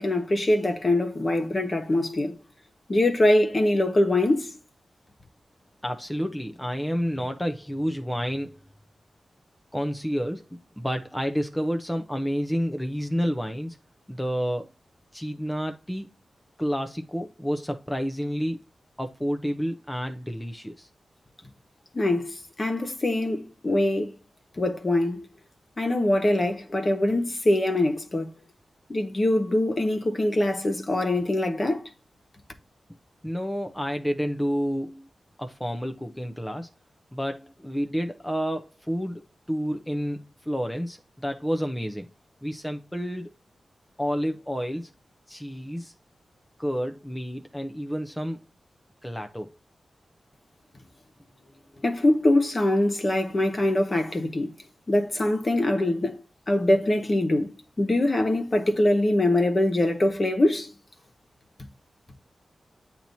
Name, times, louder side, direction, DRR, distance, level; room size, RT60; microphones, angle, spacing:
voice 1, 0.0-2.4 2.9-4.5 21.9-24.1 24.6-25.2 25.8-28.3 28.9-31.8 51.8-54.5 54.9-56.2 56.5-60.7, left 1 dB, 35° left, 1.4 m, -23 dB
voice 2, 5.8-8.6 9.7-13.8 14.1-14.7 15.1-16.1 16.6-18.6 19.0-20.9 33.2-35.1 35.4-36.7 37.1-39.2 39.5-42.1 42.4-43.3 44.0-44.9 45.3-45.9 46.6-48.4 49.0-49.5, equal, 5° left, 0.7 m, -30 dB
8.8 x 3.0 x 4.0 m
wide cardioid pair, 85°, 0 cm